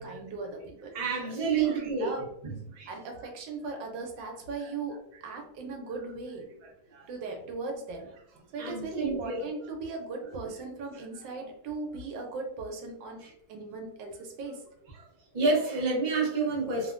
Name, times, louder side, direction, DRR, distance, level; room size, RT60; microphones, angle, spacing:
voice 1, 0.0-0.9 1.3-2.3 2.9-6.5 7.1-8.1 8.5-13.2 13.5-14.6, right 3 dB, 85° right, 3 dB, 1.3 m, -38 dB
voice 2, 0.9-2.1 2.4-2.9 3.2-3.3 4.6-4.7 6.9-7.0 8.6-9.5 10.4-10.5 10.9-11.0 11.4-11.5 13.2-13.3 14.9-15.0 15.3-16.9, right 4 dB, 45° right, -3 dB, 0.6 m, -29 dB
3.3 x 2.1 x 2.4 m, 0.77 s
omnidirectional pair, 2.0 m